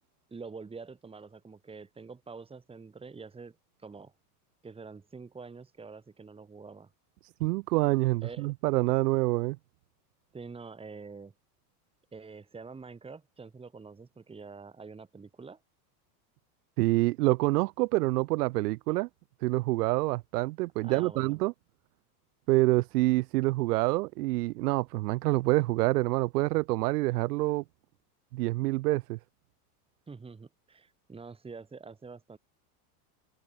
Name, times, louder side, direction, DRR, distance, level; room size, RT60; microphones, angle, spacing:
voice 1, 0.3-4.1 4.6-6.9 8.2-8.5 10.3-11.3 12.1-15.6 20.8-21.4 30.1-32.4, right 4 dB, 10° right, 5.8 m, -46 dB
voice 2, 7.4-9.6 16.8-19.1 19.4-21.5 22.5-27.6 28.3-29.2, right 21 dB, 75° right, 1.1 m, -27 dB
supercardioid pair, 150°, 46 cm